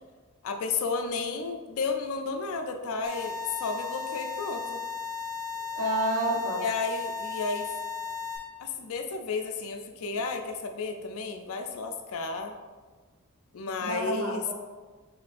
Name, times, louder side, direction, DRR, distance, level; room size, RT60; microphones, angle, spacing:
voice 1, 0.4-4.8 6.6-7.7 8.6-12.5 13.5-14.4, left 4 dB, 70° left, 5 dB, 0.4 m, -32 dB
sound 1, 3.0-8.4, left 6 dB, 15° right, 0.8 m, -35 dB
voice 2, 5.8-6.6 13.8-14.5, right 1 dB, 85° right, -2 dB, 0.9 m, -29 dB
5.0 x 3.2 x 2.6 m, 1.4 s
head